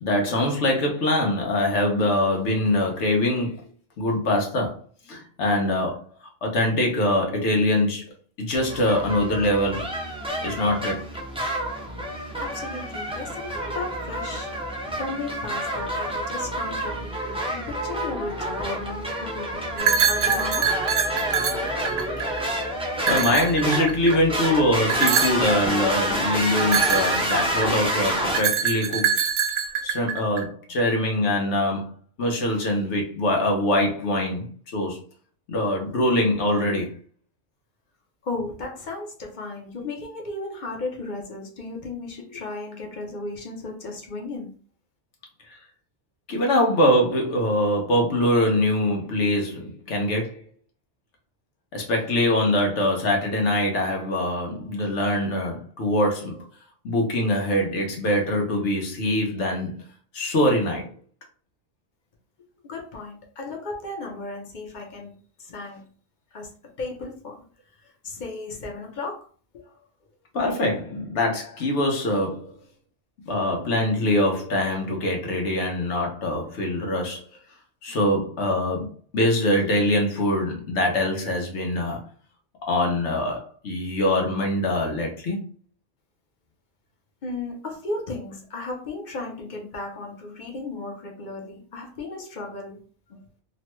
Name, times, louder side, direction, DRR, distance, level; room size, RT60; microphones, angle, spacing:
voice 1, 0.0-3.6 4.0-4.8 5.1-6.0 6.4-8.0 8.4-9.9 10.4-11.0 22.2-22.3 23.1-29.1 29.8-31.9 32.2-35.0 35.5-36.9 46.3-50.4 51.7-56.4 56.8-59.7 60.1-60.9 70.3-72.5 73.3-77.2 77.8-78.9 79.1-82.1 82.6-85.4, left 1 dB, 85° left, 1.2 m, -23 dB
sound 1, 8.5-28.4, right 1 dB, 10° right, 0.4 m, -28 dB
voice 2, 12.4-14.5 14.8-20.7 38.2-44.5 62.6-65.1 65.4-65.8 66.3-67.4 68.0-69.3 87.2-92.8 93.1-93.2, left 3 dB, 50° left, 0.7 m, -35 dB
sound 2, 19.8-22.4 23.0-24.2 24.9-25.5 26.6-27.8 28.3-30.4, right 7 dB, 60° right, 0.6 m, -24 dB
3.1 x 2.2 x 2.9 m
omnidirectional pair, 1.2 m